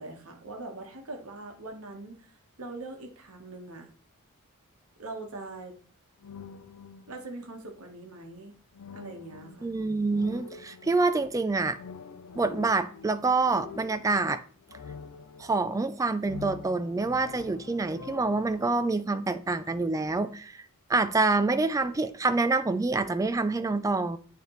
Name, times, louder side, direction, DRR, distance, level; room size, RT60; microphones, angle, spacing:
voice 1, 0.0-3.9 5.0-5.7 7.1-8.6 8.9-9.7, right 2 dB, 70° right, 1.3 m, -42 dB
sound 1, 6.2-7.4 8.7-11.2 11.7-15.9 16.2-18.7, left 5 dB, 85° left, 0.5 m, -46 dB
voice 2, 9.6-11.8 12.4-14.4 15.4-20.6 20.9-24.2, right 3 dB, 15° right, 0.3 m, -27 dB
8.9 x 3.4 x 3.1 m
head